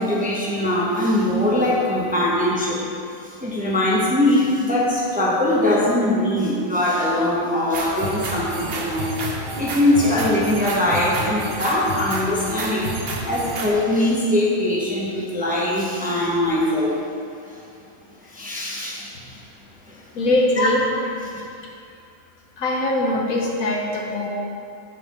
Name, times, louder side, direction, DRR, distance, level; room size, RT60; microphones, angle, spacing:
voice 1, 0.0-2.8 3.2-9.1 9.6-12.9 13.2-17.0 18.2-19.4 19.9-20.0 20.6-20.7, left 1 dB, 5° right, -6 dB, 0.8 m, -21 dB
sound 1, 7.7-13.7, right 2 dB, 50° right, 0.9 m, -29 dB
voice 2, 20.1-20.8 22.6-24.3, left 1 dB, 80° left, -1 dB, 1.3 m, -22 dB
8.8 x 4.1 x 4.2 m, 2.5 s
omnidirectional pair, 1.5 m